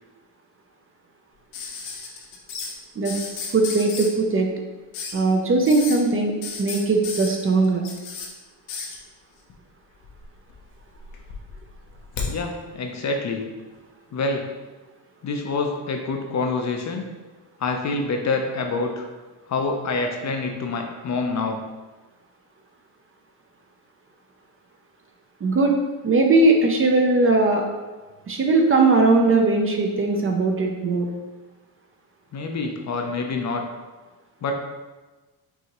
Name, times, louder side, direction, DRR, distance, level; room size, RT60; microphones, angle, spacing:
sound 1, 1.5-2.7 3.0-4.1 4.9-5.2 5.6-6.0 6.4-8.3 8.7-9.0 10.0-10.6 10.9-12.3 13.7-13.8, left 5 dB, 85° left, 0.9 m, -33 dB
voice 1, 3.5-4.5 5.1-6.3 6.6-7.8 25.4-25.8 26.0-27.6 28.3-31.1, right 3 dB, 30° right, 1 dB, 0.4 m, -19 dB
voice 2, 12.3-13.4 14.1-14.4 15.2-17.1 17.6-19.1 19.5-21.6 32.3-33.6 34.4-34.5, left 3 dB, 40° left, 3 dB, 0.5 m, -26 dB
5.4 x 2.7 x 2.9 m, 1.2 s
cardioid pair, 110°, 47 cm